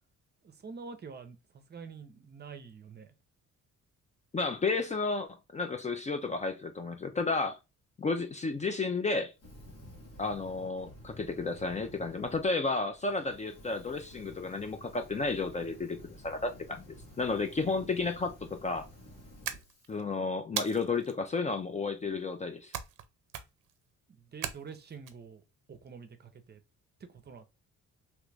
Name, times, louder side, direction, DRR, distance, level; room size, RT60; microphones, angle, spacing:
voice 1, 0.4-3.1 24.1-25.4 25.7-26.6 27.1-27.5, right 5 dB, 35° right, 0.6 m, -47 dB
voice 2, 4.3-7.6 8.0-9.3 10.2-16.0 16.2-16.8 17.2-18.3 18.6-18.8 19.9-22.7, left 3 dB, 25° left, 0.4 m, -32 dB
Fire, 9.3-12.5 12.9-20.0, left 1 dB, 90° left, 1.5 m, -52 dB
sound 1, 19.4-20.0 20.6-21.1 22.7-23.0 23.3-23.7 24.4-25.1, right 10 dB, 85° right, 0.5 m, -38 dB
3.0 x 2.4 x 3.2 m
cardioid pair, 90°, 30 cm